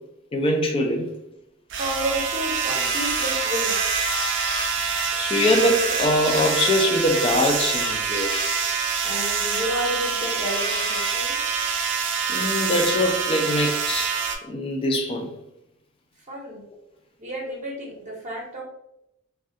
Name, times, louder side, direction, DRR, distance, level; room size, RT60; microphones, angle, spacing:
voice 1, 0.3-1.1 4.8-8.5 12.3-14.1 14.4-15.3, left 1 dB, 25° left, 0.4 m, -23 dB
sound 1, 1.7-14.4, right 5 dB, 60° right, 0.4 m, -25 dB
voice 2, 1.8-3.7 9.0-11.3 16.3-16.6 17.2-18.6, equal, 35° right, 0.7 m, -31 dB
2.3 x 2.2 x 2.7 m
head